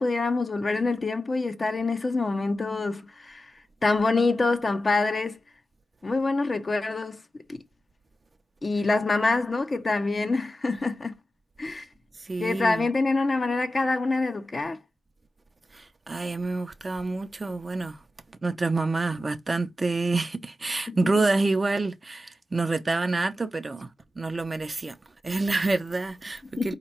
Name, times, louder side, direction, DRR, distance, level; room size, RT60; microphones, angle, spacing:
voice 1, 0.0-3.5 3.8-5.4 6.0-7.2 7.5-7.6 8.6-11.2 11.6-11.9 12.4-14.8 20.9-21.0 26.6-26.7, left 3 dB, 40° left, 0.7 m, -26 dB
voice 2, 12.2-12.9 15.7-18.0 18.4-23.9 24.2-24.9 25.2-26.7, right 3 dB, 35° right, 0.6 m, -27 dB
4.3 x 2.9 x 4.2 m
supercardioid pair, 45°, 0 cm